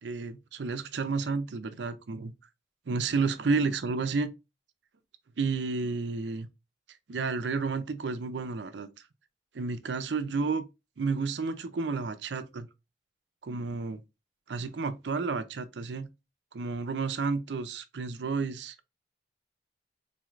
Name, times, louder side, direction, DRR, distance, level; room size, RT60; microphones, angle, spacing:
voice 1, 0.0-2.3 2.9-4.3 5.4-6.5 7.1-8.9 9.5-10.6 11.0-12.7 13.4-14.0 14.5-16.1 16.5-18.9, right 4 dB, 80° right, 0.5 m, -31 dB
4.0 x 3.1 x 2.4 m
head